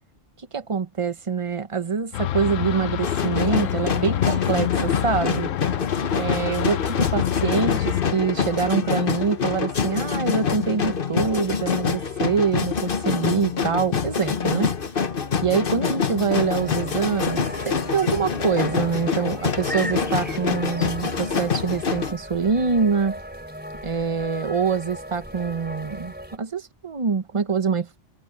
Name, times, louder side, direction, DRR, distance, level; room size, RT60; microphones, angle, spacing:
voice 1, 0.5-5.5 6.1-14.7 15.4-23.2 23.8-27.9, right 5 dB, 30° right, 0.8 m, -25 dB
sound 1, 2.1-8.1, left 12 dB, 85° left, 1.1 m, -27 dB
sound 2, 3.0-22.1, left 6 dB, 45° left, 1.3 m, -26 dB
sound 3, 16.3-26.4, equal, 10° right, 3.2 m, -37 dB
omnidirectional pair, 1.3 m